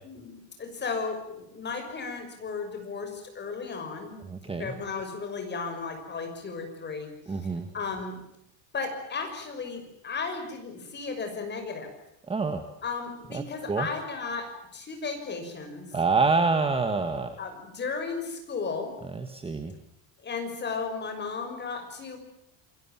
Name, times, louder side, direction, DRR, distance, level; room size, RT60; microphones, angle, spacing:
voice 1, 0.0-4.2 4.5-7.4 7.7-8.2 8.7-11.9 12.8-15.9 17.4-19.0 20.2-22.2, left 4 dB, 25° left, 5 dB, 6.2 m, -35 dB
voice 2, 4.3-4.7 7.3-7.7 12.3-12.6 13.3-13.4 13.7-13.9 15.9-17.3 19.1-19.7, right 4 dB, 10° right, 7 dB, 1.6 m, -26 dB
28.5 x 22.5 x 7.5 m, 0.79 s
cardioid pair, 170°, 45 cm